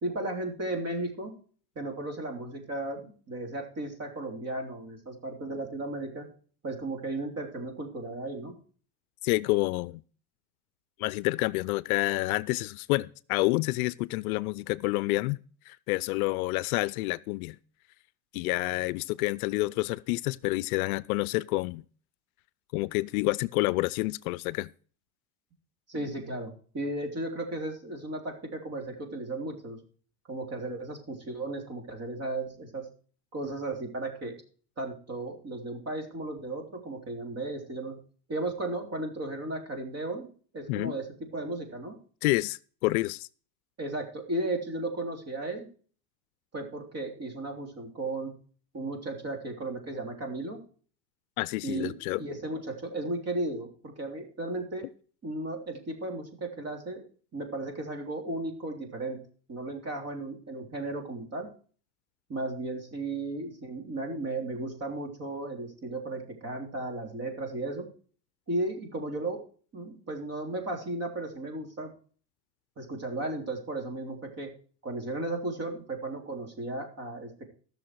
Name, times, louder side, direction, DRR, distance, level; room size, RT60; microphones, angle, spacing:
voice 1, 0.0-1.3 1.7-6.2 6.6-8.5 25.9-29.8 30.3-32.9 33.3-34.4 34.8-38.0 38.3-40.3 40.5-41.9 43.8-45.7 46.5-48.3 48.7-50.6 51.6-54.8 55.2-57.0 57.3-59.2 59.5-61.5 62.3-67.9 68.5-69.4 69.7-71.9 72.8-74.5 74.8-77.5, right 2 dB, 35° right, 3.3 m, -35 dB
voice 2, 9.2-10.0 11.0-15.4 15.7-17.6 18.3-21.8 22.7-24.7 40.7-41.0 42.2-43.3 51.4-52.2, left 21 dB, 70° left, 0.6 m, -28 dB
15.5 x 6.6 x 4.6 m
supercardioid pair, 115°, 45 cm